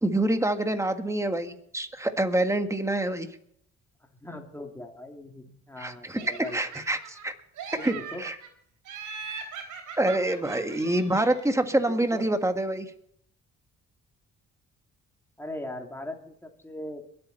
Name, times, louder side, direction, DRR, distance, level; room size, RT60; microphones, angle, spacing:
voice 1, 0.0-3.3 5.8-6.2 6.5-7.3 7.8-8.3 10.0-12.9, right 1 dB, 10° right, 7 dB, 1.6 m, -26 dB
voice 2, 4.0-6.6 7.8-8.2 11.9-12.2 15.4-17.0, left 1 dB, 10° left, 2 dB, 3.0 m, -39 dB
Laughter, 6.2-7.3 7.6-8.5 8.9-11.6, right 6 dB, 80° right, 3.9 m, -40 dB
22.5 x 8.7 x 4.4 m, 0.67 s
cardioid pair, 90°, 30 cm